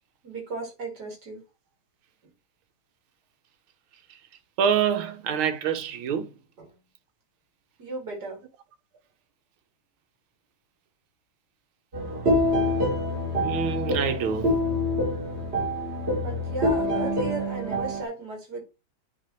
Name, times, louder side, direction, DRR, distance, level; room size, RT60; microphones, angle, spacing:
voice 1, 0.2-1.4 6.6-6.7 7.8-8.4 16.1-18.6, right 2 dB, 50° right, 2.6 m, -36 dB
voice 2, 4.6-6.3 13.4-14.5, right 7 dB, 90° right, 1.7 m, -26 dB
sound 1, 11.9-18.0, left 1 dB, 35° right, 1.7 m, -26 dB
9.9 x 3.5 x 3.1 m
omnidirectional pair, 2.2 m